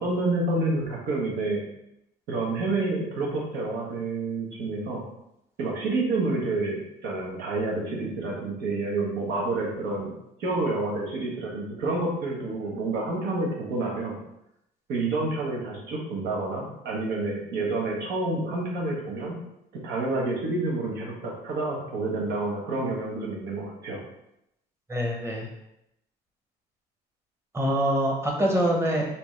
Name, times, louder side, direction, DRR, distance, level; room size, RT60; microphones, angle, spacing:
voice 1, 0.0-1.6 2.3-5.0 5.6-10.1 10.4-14.2 14.9-19.4 19.7-24.0, right 2 dB, 85° right, -2 dB, 1.1 m, -29 dB
voice 2, 24.9-25.5 27.5-29.1, equal, 15° right, 0 dB, 0.9 m, -24 dB
3.4 x 2.9 x 3.1 m, 0.83 s
cardioid pair, 110°, 17 cm